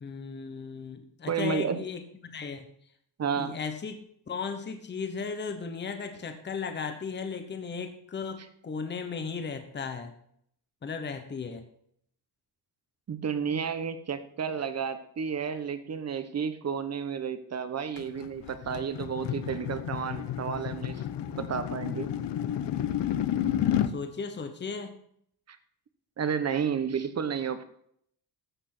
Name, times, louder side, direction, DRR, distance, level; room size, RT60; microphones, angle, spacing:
voice 1, 0.0-2.6 3.3-4.0 4.3-10.1 10.8-11.7 23.9-24.9, left 5 dB, 25° left, 7 dB, 1.0 m, -36 dB
voice 2, 1.3-1.8 3.2-3.5 13.1-22.1 25.5-25.6 26.2-27.6, right 7 dB, 40° right, 11 dB, 1.1 m, -31 dB
sound 1, 18.0-24.0, left 10 dB, 85° left, 0.9 m, -31 dB
15.0 x 6.2 x 6.1 m, 0.67 s
wide cardioid pair, 180°, 41 cm